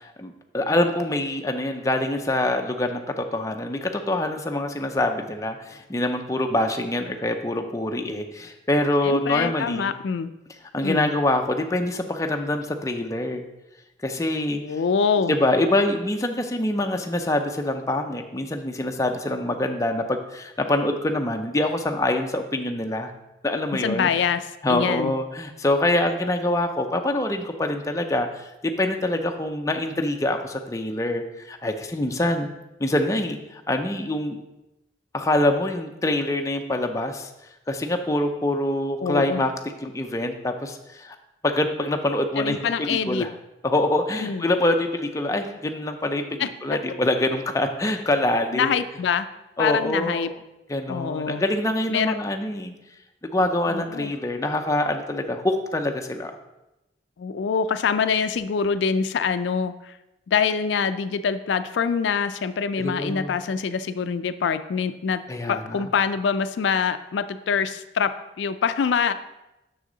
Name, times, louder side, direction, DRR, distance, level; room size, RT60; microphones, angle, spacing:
voice 1, 0.0-9.9 10.7-13.4 14.0-14.6 15.3-23.1 23.4-24.1 24.6-28.5 28.8-32.5 32.8-34.4 35.1-37.3 37.7-39.5 39.8-41.2 41.4-43.3 43.6-48.7 49.6-50.3 50.7-52.7 53.3-56.4 62.8-63.4 65.3-65.9, left 1 dB, 20° left, 4 dB, 0.5 m, -25 dB
voice 2, 9.0-10.3 10.8-11.1 14.6-15.3 23.8-25.1 39.0-39.4 42.4-43.3 44.2-44.4 46.4-46.5 48.5-49.3 49.6-50.3 50.9-51.4 51.9-52.2 53.7-54.1 57.2-60.0 60.3-65.2 65.5-68.1 68.4-69.1, left 6 dB, 85° left, 11 dB, 0.4 m, -25 dB
6.4 x 6.2 x 3.8 m, 0.96 s
head